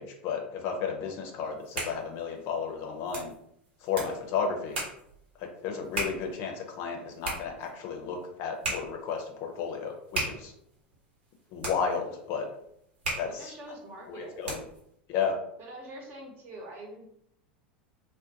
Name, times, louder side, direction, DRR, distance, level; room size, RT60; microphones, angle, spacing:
voice 1, 0.0-3.3 3.8-4.8 5.4-10.5 11.5-12.5 13.2-13.5 14.1-14.6 15.1-15.4, left 6 dB, 50° left, 2 dB, 0.6 m, -33 dB
sound 1, 1.4-14.9, right 2 dB, 75° right, 1.0 m, -39 dB
voice 2, 13.3-14.4 15.6-17.0, right 1 dB, 40° right, 0 dB, 0.8 m, -44 dB
2.4 x 2.1 x 2.8 m, 0.73 s
hypercardioid pair, 85°, 6 cm